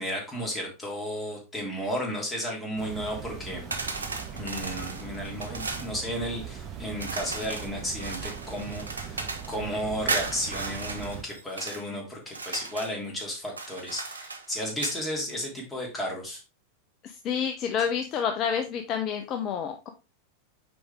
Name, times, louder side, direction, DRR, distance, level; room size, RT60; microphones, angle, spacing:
voice 1, 0.0-3.6 4.3-9.2 9.5-16.4, equal, 15° left, -2 dB, 3.1 m, -33 dB
sound 1, 2.8-11.2, right 7 dB, 35° right, 2.0 m, -40 dB
sound 2, 3.7-5.9 7.0-9.6 10.1-11.8 12.3-13.0 13.5-15.0, right 4 dB, 85° right, 0.8 m, -35 dB
voice 2, 17.0-19.9, left 7 dB, 40° left, 6 dB, 0.7 m, -29 dB
6.1 x 4.9 x 3.5 m, 0.30 s
figure-of-eight pair, 90°, 0 cm